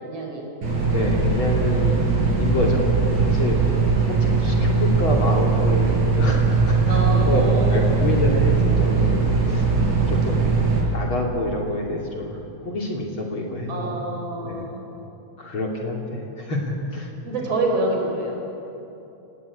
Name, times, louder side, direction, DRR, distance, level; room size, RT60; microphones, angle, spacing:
voice 1, 0.0-0.5 6.9-8.0 13.7-14.8 17.2-18.4, right 2 dB, 55° right, 0 dB, 5.5 m, -27 dB
sound 1, 0.6-10.8, right 4 dB, 75° right, 6.2 m, -20 dB
voice 2, 0.9-9.7 10.1-10.5 10.9-14.1 14.4-14.7 15.4-17.1, left 1 dB, 45° left, 0 dB, 3.5 m, -27 dB
29.5 x 18.5 x 8.6 m, 3.0 s
omnidirectional pair, 3.3 m